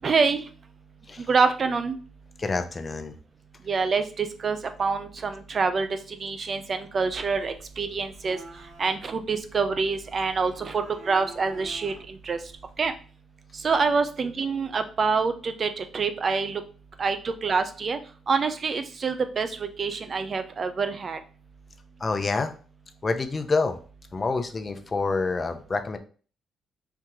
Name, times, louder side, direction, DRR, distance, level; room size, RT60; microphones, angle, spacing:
voice 1, 0.0-0.5 1.3-2.0 3.7-8.4 8.8-12.4 12.8-12.9 13.5-16.6 17.0-18.0 18.3-21.2, right 5 dB, 45° right, 9 dB, 0.6 m, -26 dB
voice 2, 2.4-3.2 22.0-22.5 23.0-23.8 24.1-26.0, left 3 dB, 30° left, 7 dB, 0.6 m, -27 dB
sound 1, 7.1-13.0, right 2 dB, 65° right, 2.1 m, -49 dB
4.6 x 2.9 x 3.7 m, 0.40 s
cardioid pair, 90°, 0 cm